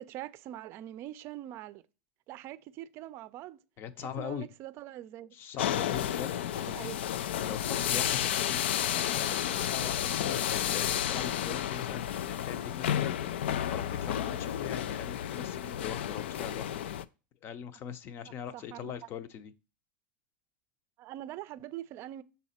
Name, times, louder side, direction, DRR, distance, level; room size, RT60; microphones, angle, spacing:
voice 1, 0.0-1.8 2.3-3.6 4.0-5.4 6.6-7.0 18.3-19.0 21.0-22.2, right 13 dB, 45° right, 0.5 m, -43 dB
voice 2, 3.8-4.5 5.3-6.9 7.4-16.7 17.4-19.5, left 9 dB, 40° left, 0.7 m, -41 dB
sound 1, 5.6-17.0, left 10 dB, 80° left, 0.4 m, -31 dB
6.3 x 4.1 x 4.3 m
supercardioid pair, 115°, 6 cm